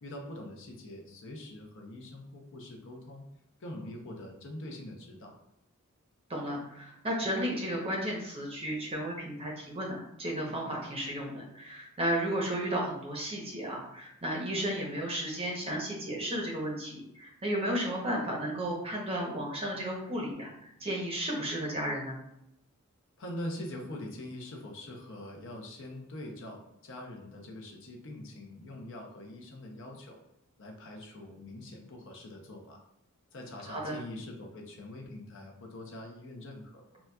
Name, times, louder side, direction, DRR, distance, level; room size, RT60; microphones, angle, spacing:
voice 1, 0.0-3.2 3.6-5.3 23.2-30.2 30.6-32.8 33.3-36.8, left 1 dB, 60° left, 1 dB, 0.6 m, -43 dB
voice 2, 6.3-22.2 33.7-34.0, right 1 dB, 25° right, -2 dB, 0.7 m, -33 dB
3.9 x 2.3 x 2.2 m, 0.81 s
head